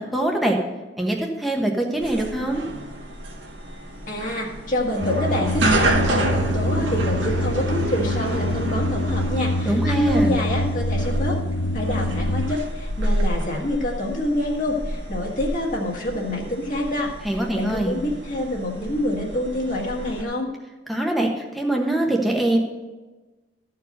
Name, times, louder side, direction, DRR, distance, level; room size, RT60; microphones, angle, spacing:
voice 1, 0.1-0.6 1.0-2.6 9.6-10.4 17.2-17.9 20.9-22.6, right 1 dB, ahead, -1 dB, 1.1 m, -23 dB
sound 1, 2.0-20.2, right 1 dB, 80° right, 1.6 m, -29 dB
voice 2, 4.1-11.4 11.7-20.5, left 1 dB, 45° left, -2 dB, 1.7 m, -26 dB
sound 2, 5.0-12.6, left 1 dB, 80° left, 0.6 m, -25 dB
14.0 x 4.7 x 6.6 m, 1.2 s
head